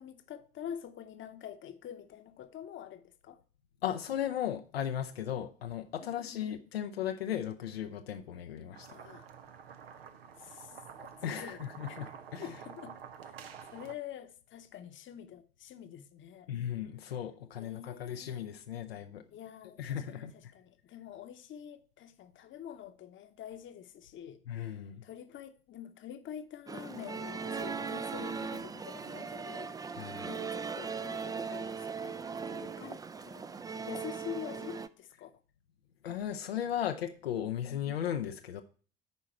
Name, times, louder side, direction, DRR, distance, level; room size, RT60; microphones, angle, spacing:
voice 1, 0.0-3.4 6.0-6.5 8.9-9.3 10.4-10.8 11.2-11.6 11.9-12.0 12.4-13.0 13.2-13.3 13.7-16.5 17.6-18.5 19.3-29.7 30.1-32.2 32.5-33.5 33.9-35.3 37.7-37.8, left 9 dB, 40° left, 0.9 m, -46 dB
voice 2, 3.8-9.0 11.0-12.5 16.5-19.3 19.8-20.5 24.5-25.0 29.9-30.3 32.5-32.6 36.0-38.6, left 10 dB, 75° left, 0.6 m, -36 dB
sound 1, 8.7-14.0, right 7 dB, 75° right, 0.8 m, -49 dB
sound 2, 26.7-34.9, right 5 dB, 15° right, 0.4 m, -39 dB
10.5 x 4.6 x 4.3 m
figure-of-eight pair, 55°, 30 cm